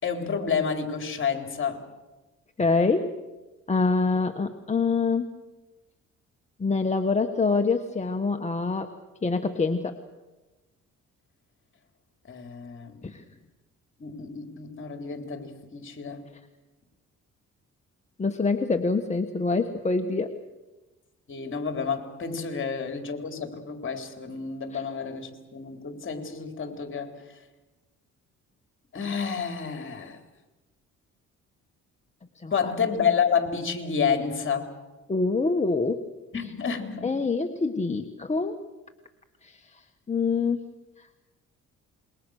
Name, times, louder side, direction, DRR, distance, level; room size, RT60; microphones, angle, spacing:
voice 1, 0.0-1.8 12.3-13.0 14.0-16.2 21.3-27.1 28.9-30.2 32.5-34.7 36.3-37.1, left 6 dB, 40° left, 5 dB, 3.8 m, -29 dB
voice 2, 2.6-3.1 3.7-5.3 6.6-8.9 9.2-10.0 13.0-13.2 18.2-20.3 24.7-24.8 32.3-32.7 35.1-36.1 37.0-38.6 39.4-40.6 41.0-41.1, left 4 dB, 25° left, 5 dB, 1.4 m, -25 dB
27.0 x 22.5 x 6.5 m, 1.1 s
cardioid pair, 90°, 30 cm